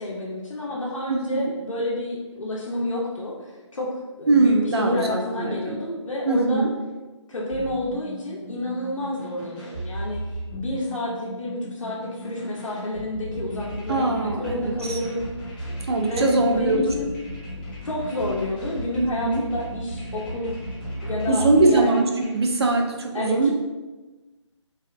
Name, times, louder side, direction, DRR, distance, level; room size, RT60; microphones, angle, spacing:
voice 1, 0.0-3.9 4.2-6.7 7.3-10.2 10.5-15.2 16.0-17.1 17.8-20.5 21.0-21.9 23.1-23.5, left 1 dB, 85° left, -4 dB, 0.6 m, -29 dB
voice 2, 1.1-1.5 4.3-5.8 6.3-6.7 13.9-15.0 15.9-16.9 19.0-19.4 21.3-22.1 22.3-23.5, right 3 dB, 55° right, 2 dB, 0.4 m, -21 dB
sound 1, 7.5-22.4, right 1 dB, 20° left, 0.5 m, -36 dB
2.7 x 2.1 x 2.4 m, 1.2 s
figure-of-eight pair, 160°, 16 cm